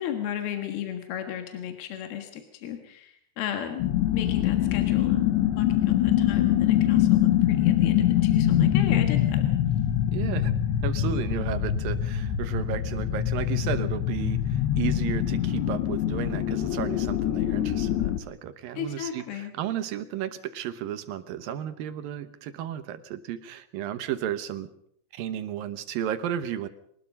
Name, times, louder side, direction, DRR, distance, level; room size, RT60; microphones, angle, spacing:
voice 1, 0.0-9.4 18.7-19.5, left 9 dB, 65° left, 5 dB, 3.3 m, -35 dB
sound 1, 3.8-18.2, left 11 dB, 80° left, 3.3 m, -24 dB
voice 2, 10.1-10.5 10.8-24.7 25.1-26.7, right 10 dB, 70° right, 11 dB, 2.4 m, -33 dB
24.0 x 20.0 x 5.4 m, 0.67 s
omnidirectional pair, 5.0 m